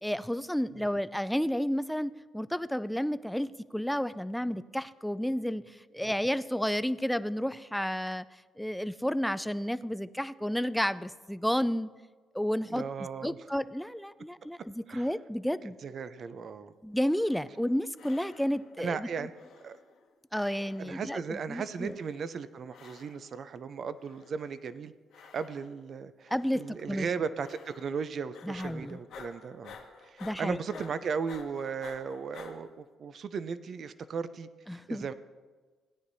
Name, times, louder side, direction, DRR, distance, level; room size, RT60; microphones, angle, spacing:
voice 1, 0.0-5.6 5.9-8.3 8.6-11.9 12.3-12.8 13.2-15.8 16.8-19.1 20.3-21.9 26.3-27.1 28.4-29.0 30.2-30.6 34.7-35.1, equal, ahead, 14 dB, 0.3 m, -31 dB
voice 2, 12.7-13.4 14.9-15.1 15.8-16.7 18.8-19.3 19.6-19.8 20.8-24.9 25.2-35.1, right 6 dB, 55° right, 13 dB, 0.5 m, -36 dB
sound 1, 17.0-17.7 18.0-18.8 19.3-20.1 20.3-21.1 21.7-22.3 22.7-23.4 24.0-24.6 25.1-25.9 26.3-26.8 27.4-28.1 28.3-32.5, left 6 dB, 80° left, 1.6 m, -52 dB
17.0 x 9.8 x 2.7 m, 1.4 s
cardioid pair, 90°, 0 cm